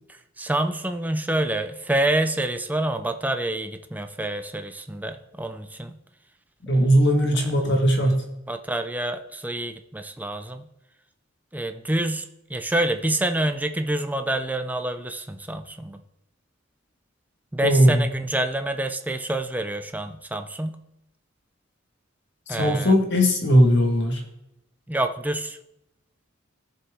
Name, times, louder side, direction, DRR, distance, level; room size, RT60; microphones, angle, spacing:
voice 1, 0.1-6.0 6.7-6.9 7.4-7.5 8.0-8.2 8.5-10.7 11.5-16.0 17.5-20.8 22.5-23.0 24.9-25.6, right 1 dB, 10° right, 7 dB, 0.6 m, -27 dB
voice 2, 6.7-8.3 17.6-18.0 22.6-24.2, equal, 60° left, 2 dB, 1.6 m, -19 dB
19.5 x 7.2 x 3.6 m, 0.86 s
head